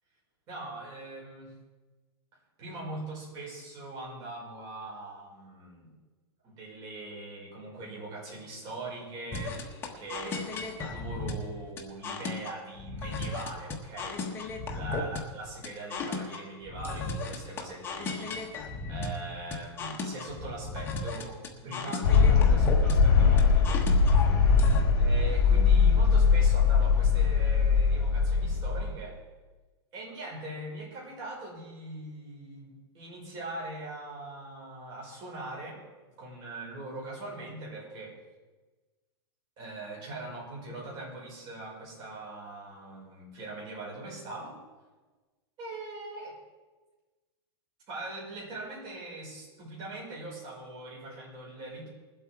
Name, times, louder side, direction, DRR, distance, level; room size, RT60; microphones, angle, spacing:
voice 1, 0.5-1.5 2.6-5.9 6.4-14.3 14.7-18.3 18.9-23.9 25.0-29.2 29.9-35.8 36.2-38.2 39.6-44.6 45.6-46.4 47.9-51.9, right 2 dB, 30° right, -4 dB, 5.5 m, -41 dB
sound 1, 9.3-24.8, left 3 dB, 15° left, 1.2 m, -36 dB
sound 2, 22.0-28.9, left 5 dB, 50° left, 3.8 m, -21 dB
21.0 x 7.9 x 4.7 m, 1.3 s
supercardioid pair, 165°, 14 cm